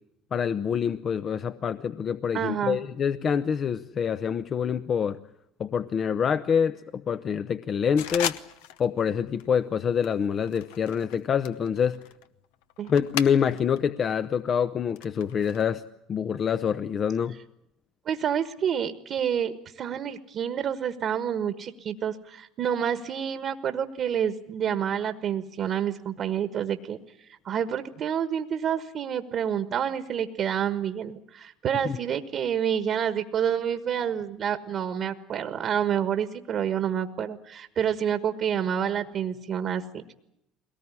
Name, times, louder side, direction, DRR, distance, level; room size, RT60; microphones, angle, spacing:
voice 1, 0.3-5.2 5.6-8.4 8.8-12.0 12.9-15.8 16.1-17.4 31.8-32.0, left 7 dB, 45° left, 12 dB, 0.8 m, -26 dB
voice 2, 2.3-2.8 12.8-12.9 18.1-40.1, right 8 dB, 55° right, 11 dB, 1.4 m, -28 dB
sound 1, 8.0-8.9 9.2-9.5 10.0-13.8 14.1-15.6, left 11 dB, 85° left, 1.0 m, -37 dB
22.0 x 19.0 x 9.9 m, 0.84 s
supercardioid pair, 80°, 0 cm